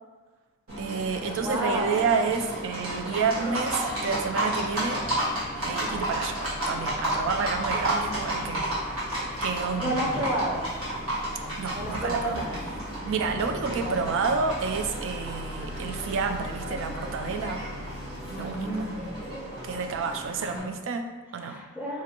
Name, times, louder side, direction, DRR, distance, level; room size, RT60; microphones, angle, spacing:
Livestock farm animals working animals, 0.7-20.6, right 1 dB, 85° right, 1.4 m, -32 dB
voice 1, 0.8-5.1 5.6-8.7 9.4-10.1 11.6-12.4 13.0-17.6 18.4-18.7 19.6-21.6, right 5 dB, 65° right, 6 dB, 0.3 m, -29 dB
voice 2, 1.4-2.2 7.7-8.6 9.8-10.6 11.7-12.6 13.6-14.2 18.3-19.0 20.4-20.7 21.4-22.0, right 1 dB, 10° right, -4 dB, 0.6 m, -31 dB
3.7 x 2.5 x 2.8 m, 1.3 s
head